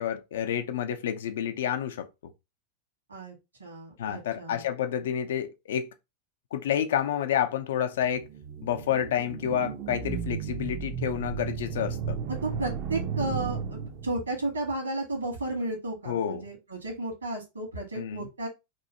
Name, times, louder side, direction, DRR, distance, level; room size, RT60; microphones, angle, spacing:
voice 1, 0.0-2.1 4.0-5.9 6.5-8.3 8.6-12.2 16.1-16.5 18.0-18.3, left 9 dB, 60° left, 0.4 m, -29 dB
voice 2, 3.1-4.6 12.3-18.5, right 2 dB, 75° right, 1.6 m, -33 dB
sound 1, 8.0-14.4, right 7 dB, 40° right, 0.5 m, -34 dB
3.1 x 2.7 x 4.0 m
figure-of-eight pair, 90°, 0 cm